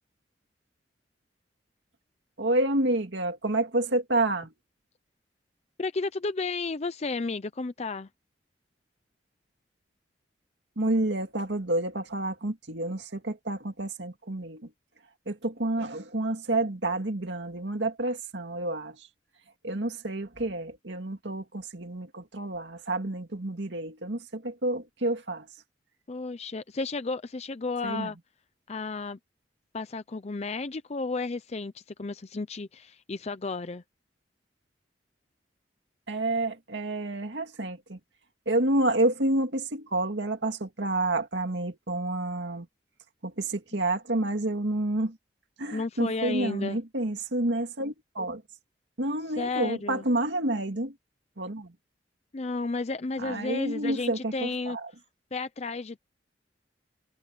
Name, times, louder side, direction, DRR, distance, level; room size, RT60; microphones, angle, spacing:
voice 1, 2.4-4.5 10.8-14.7 15.3-19.1 19.6-25.5 27.8-28.1 36.1-38.0 38.5-42.7 43.2-45.2 45.6-48.4 49.0-51.0 51.4-51.7 53.2-54.9, right 2 dB, 85° right, 2.2 m, -29 dB
voice 2, 5.8-8.1 26.1-28.2 28.7-29.2 29.7-33.8 45.7-46.8 49.4-50.0 52.3-54.8 55.3-56.0, left 3 dB, 35° left, 0.6 m, -32 dB
head